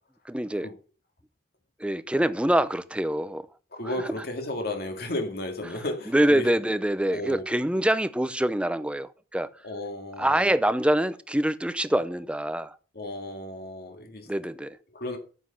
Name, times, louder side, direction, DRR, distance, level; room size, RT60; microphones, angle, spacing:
voice 1, 0.3-0.7 1.8-3.5 6.1-9.5 10.2-12.8 14.3-14.8, right 1 dB, 5° right, 0.6 m, -25 dB
voice 2, 3.7-6.5 7.1-7.4 9.6-10.5 12.9-14.3 14.9-15.2, left 1 dB, 60° left, 2.2 m, -33 dB
9.8 x 8.1 x 5.8 m
head